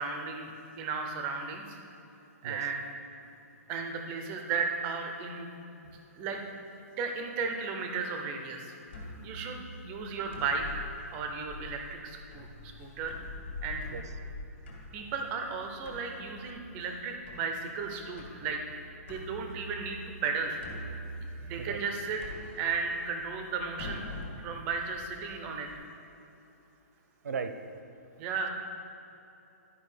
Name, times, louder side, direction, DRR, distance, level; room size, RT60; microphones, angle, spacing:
voice 1, 0.0-1.8 2.4-2.8 3.7-5.5 6.1-6.4 7.0-13.2 13.6-13.8 14.9-18.6 19.1-20.6 20.9-21.1 21.4-22.2 22.6-24.1 24.4-25.8 28.2-28.5, right 5 dB, 15° right, 4 dB, 0.5 m, -35 dB
sound 1, 8.9-25.7, left 1 dB, 45° left, 1.8 m, -45 dB
voice 2, 27.2-27.6, right 6 dB, 80° right, 9 dB, 0.7 m, -35 dB
11.5 x 4.8 x 4.9 m, 2.9 s
hypercardioid pair, 175°, 9 cm